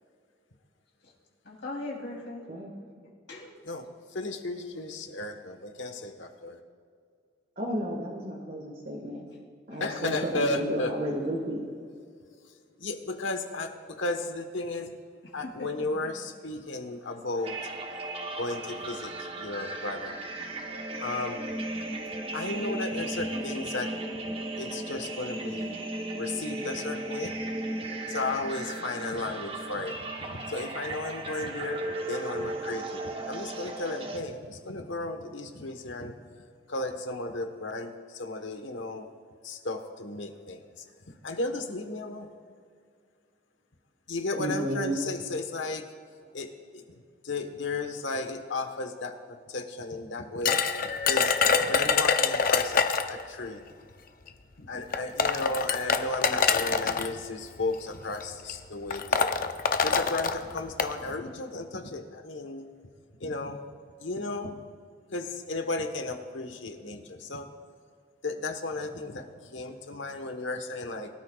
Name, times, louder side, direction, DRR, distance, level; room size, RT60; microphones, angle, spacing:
voice 1, 1.4-2.5 3.3-3.5 9.7-9.9 15.4-16.1 17.0-17.2 25.0-25.2, left 2 dB, 65° left, -2 dB, 3.5 m, -40 dB
voice 2, 3.6-6.6 9.8-11.2 12.8-14.9 15.3-17.6 18.3-20.2 21.0-21.4 22.3-23.9 24.2-25.8 26.2-27.3 28.1-36.1 36.7-39.1 39.4-40.8 41.2-42.3 44.1-45.8 46.3-47.0 47.2-51.3 51.6-52.8 53.1-53.7 54.6-59.3 59.8-62.7 63.2-63.6 64.0-64.5 65.1-67.5 68.2-71.1, left 2 dB, 85° left, 6 dB, 1.3 m, -34 dB
voice 3, 7.6-9.3 9.7-11.6 44.3-45.0, right 1 dB, 45° right, -3 dB, 1.7 m, -32 dB
sound 1, 17.4-34.2, right 2 dB, 30° right, 1.0 m, -36 dB
sound 2, 50.5-53.2 54.3-54.4 54.9-57.1 58.0-58.2 58.5-58.6 58.9-60.9, left 5 dB, 50° left, 0.6 m, -25 dB
23.0 x 13.0 x 2.4 m, 2.2 s
head